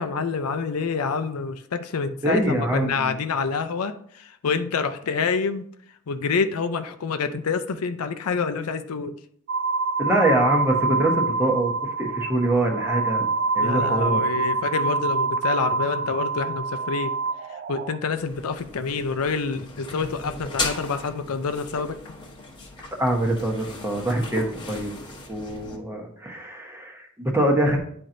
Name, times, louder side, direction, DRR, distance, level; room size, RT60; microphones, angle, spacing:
voice 1, 0.0-5.6 6.1-9.1 13.6-17.1 17.5-22.0, left 5 dB, 75° left, 9 dB, 0.5 m, -27 dB
voice 2, 2.2-3.2 10.0-13.3 13.5-14.2 23.0-24.9 25.3-27.8, right 1 dB, 10° right, 2 dB, 1.0 m, -24 dB
sound 1, 9.5-18.0, right 4 dB, 50° right, 0.4 m, -26 dB
sound 2, 18.1-25.8, left 3 dB, 20° left, 1.1 m, -36 dB
10.0 x 4.4 x 2.6 m, 0.62 s
head